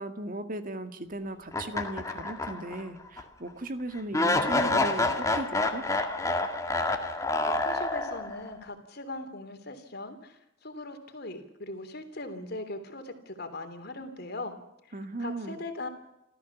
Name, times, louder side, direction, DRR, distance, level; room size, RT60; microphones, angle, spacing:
voice 1, 0.0-5.8 14.9-15.6, right 1 dB, 45° right, 8 dB, 2.0 m, -37 dB
sound 1, 1.5-2.8 3.2-3.3 4.1-8.4, left 2 dB, 15° left, 1.9 m, -28 dB
voice 2, 7.4-14.5 15.2-15.9, left 2 dB, 55° left, 7 dB, 3.1 m, -40 dB
28.0 x 14.5 x 7.1 m, 0.85 s
head